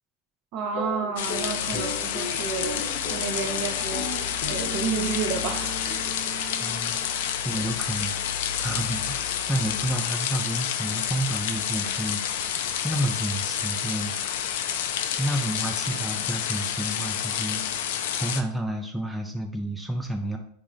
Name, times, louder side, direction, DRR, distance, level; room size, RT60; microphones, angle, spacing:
voice 1, 0.5-6.1 7.6-7.7, right 5 dB, 50° right, 5 dB, 0.6 m, -31 dB
sound 1, 0.7-7.3, equal, 35° left, 0.7 m, -37 dB
sound 2, 1.2-18.4, left 9 dB, 75° left, 0.3 m, -29 dB
voice 2, 6.6-7.0 7.4-14.4 15.2-20.4, right 1 dB, ahead, 2 dB, 0.4 m, -31 dB
3.5 x 2.0 x 3.8 m, 0.64 s
supercardioid pair, 125°, 0 cm